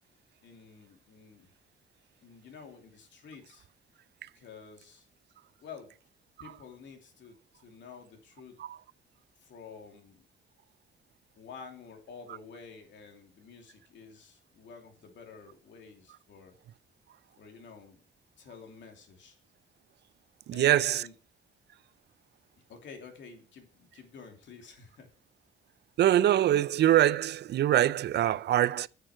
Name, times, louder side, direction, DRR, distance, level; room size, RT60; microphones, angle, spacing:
voice 1, 0.4-1.5 2.2-3.7 4.3-5.1 5.6-5.9 6.4-8.6 9.4-10.2 11.4-16.5 17.4-18.0 18.4-19.4 20.5-21.1 22.7-25.1, left 5 dB, 65° left, 2.8 m, -50 dB
voice 2, 20.5-21.0 26.0-28.9, right 12 dB, 60° right, 0.4 m, -24 dB
8.7 x 6.9 x 6.0 m
cardioid pair, 90°, 20 cm